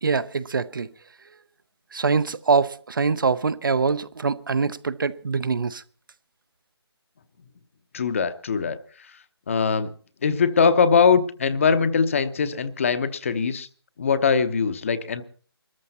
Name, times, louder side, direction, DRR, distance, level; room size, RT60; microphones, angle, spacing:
voice 1, 0.0-0.9 1.9-5.8, right 4 dB, 50° right, 0.7 m, -24 dB
voice 2, 7.9-8.8 9.5-9.9 10.2-13.7 14.0-15.2, left 5 dB, 30° left, 0.9 m, -21 dB
21.5 x 14.0 x 4.2 m
figure-of-eight pair, 165°, 14 cm